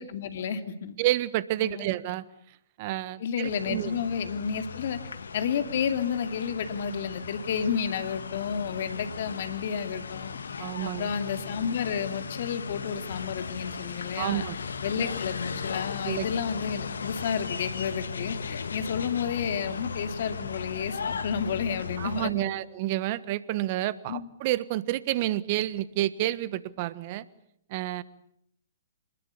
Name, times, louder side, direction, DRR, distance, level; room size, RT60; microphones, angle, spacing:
voice 1, 0.0-0.9 1.6-1.9 3.2-5.0 5.3-14.4 14.8-22.5 24.1-24.3, left 7 dB, 55° left, 9 dB, 2.7 m, -31 dB
voice 2, 1.0-2.2 2.8-3.9 10.6-11.1 14.2-14.6 16.0-16.2 22.0-27.3 27.7-28.0, right 15 dB, 45° right, 17 dB, 1.4 m, -29 dB
sound 1, 3.4-22.2, left 5 dB, 75° left, 1.9 m, -37 dB
26.0 x 21.0 x 8.4 m, 0.72 s
hypercardioid pair, 125°, 0 cm